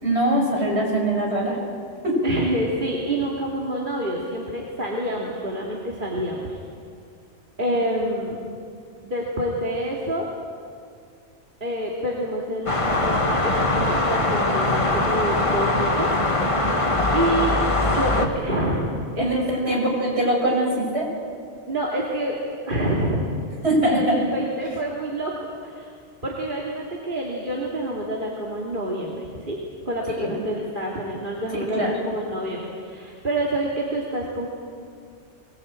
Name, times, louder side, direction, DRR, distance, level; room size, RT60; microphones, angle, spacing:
voice 1, 0.0-1.6 2.0-2.1 7.7-7.8 19.2-19.4 19.7-21.1 23.6-24.2 30.1-30.3 31.5-31.9, right 1 dB, 60° right, -1 dB, 6.1 m, -22 dB
voice 2, 2.2-6.5 7.6-8.4 9.0-10.3 11.6-16.4 17.1-17.6 17.8-19.9 21.7-22.4 22.6-23.2 23.8-25.3 25.6-25.9 26.2-29.6 29.9-34.5, right 1 dB, 45° right, -3 dB, 2.7 m, -27 dB
sound 1, 12.7-18.3, left 2 dB, 25° left, 1.6 m, -22 dB
22.5 x 19.5 x 8.9 m, 2.2 s
omnidirectional pair, 1.2 m